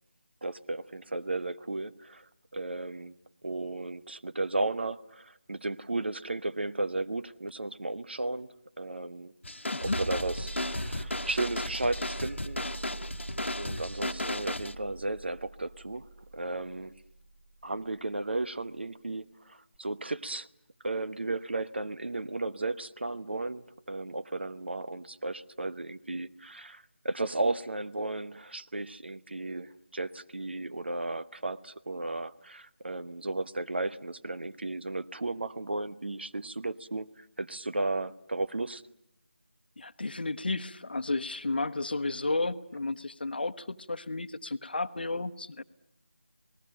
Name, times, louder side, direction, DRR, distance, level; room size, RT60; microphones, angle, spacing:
voice 1, 0.4-3.1 3.4-8.5 8.8-9.3 9.8-12.6 13.6-16.1 16.3-16.9 17.6-20.5 20.8-38.8, right 2 dB, 60° right, 1.0 m, -34 dB
sound 1, 9.4-14.7, left 1 dB, 75° left, 1.2 m, -35 dB
sound 2, 9.8-18.2 19.7-19.8, right 2 dB, 40° right, 3.6 m, -42 dB
voice 2, 39.8-45.6, left 3 dB, 55° left, 1.0 m, -32 dB
29.0 x 19.5 x 9.0 m
figure-of-eight pair, 160°, 6 cm